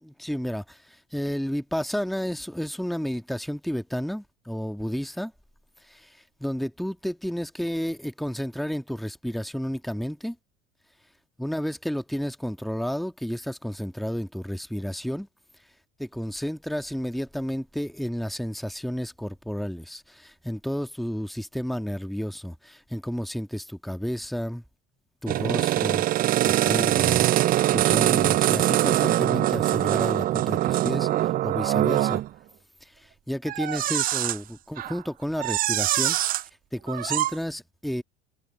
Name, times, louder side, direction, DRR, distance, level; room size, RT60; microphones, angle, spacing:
voice 1, 0.0-5.3 5.8-10.4 11.4-15.3 16.0-24.6 25.2-26.0 26.5-27.3 27.7-32.2 32.8-36.2 36.7-38.0, equal, ahead, 2.1 m, -31 dB
sound 1, 25.3-32.3 33.5-34.4 34.8-35.0 35.4-36.4 36.9-37.3, right 14 dB, 25° right, 0.4 m, -23 dB
figure-of-eight pair, 75°, 35 cm